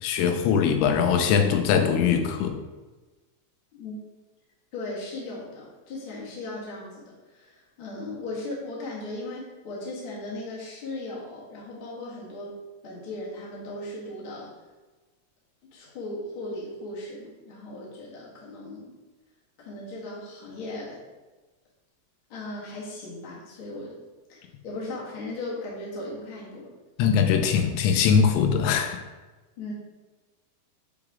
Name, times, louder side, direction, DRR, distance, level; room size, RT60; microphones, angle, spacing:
voice 1, 0.0-2.6 27.0-29.0, left 7 dB, 90° left, 5 dB, 3.0 m, -21 dB
voice 2, 4.7-12.5 12.8-14.5 15.7-18.9 19.6-21.0 22.3-24.0 24.3-26.7 29.6-29.7, left 2 dB, 55° left, -5 dB, 1.4 m, -37 dB
6.8 x 4.7 x 3.7 m, 1.2 s
omnidirectional pair, 5.1 m